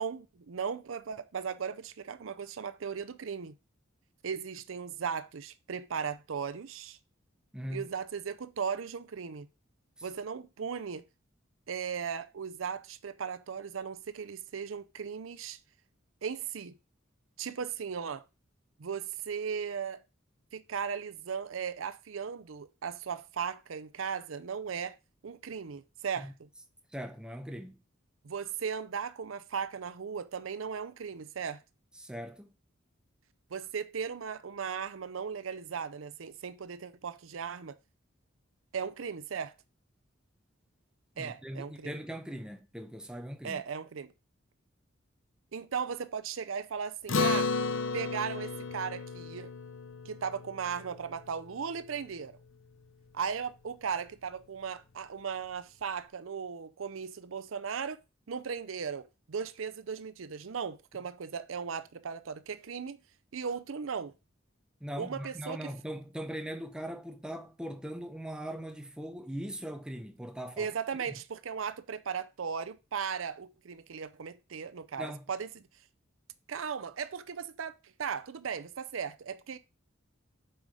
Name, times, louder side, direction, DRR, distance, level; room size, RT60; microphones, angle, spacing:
voice 1, 0.0-3.5 4.2-7.0 7.7-9.5 10.0-11.0 11.7-15.6 16.2-16.7 17.4-18.2 18.8-20.0 20.5-25.0 25.2-26.3 28.2-31.6 33.5-37.7 38.7-39.5 41.2-42.0 43.4-44.1 45.5-47.5 47.9-49.5 50.0-52.4 53.1-58.0 58.3-63.0 63.3-64.1 65.0-65.6 70.6-75.5 76.5-79.6, right 6 dB, 80° right, 0.6 m, -37 dB
voice 2, 7.5-7.9 26.2-26.3 26.9-27.8 32.0-32.5 41.2-43.6 64.8-70.7 71.1-71.2 75.0-75.3, equal, 5° right, 0.9 m, -40 dB
Acoustic guitar, 47.1-51.8, left 4 dB, 75° left, 0.8 m, -33 dB
7.9 x 5.1 x 4.9 m
head